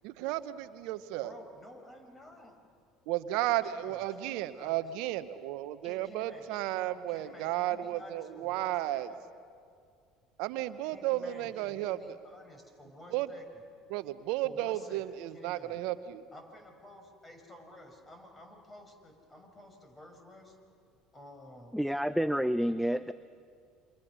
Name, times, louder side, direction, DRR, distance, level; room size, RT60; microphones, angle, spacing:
voice 1, 0.0-1.4 3.1-9.1 10.4-12.0 13.1-13.3 13.9-16.2, right 14 dB, 70° right, 13 dB, 0.8 m, -33 dB
voice 2, 1.2-2.6 3.4-4.8 5.8-9.2 10.9-13.6 14.4-15.0 15.3-15.8 16.3-20.6 21.1-21.7 22.7-22.8, left 1 dB, 25° left, 4 dB, 5.8 m, -52 dB
voice 3, 21.7-23.1, equal, ahead, 13 dB, 0.6 m, -29 dB
29.0 x 26.0 x 6.3 m, 2.3 s
hypercardioid pair, 70°, 0 cm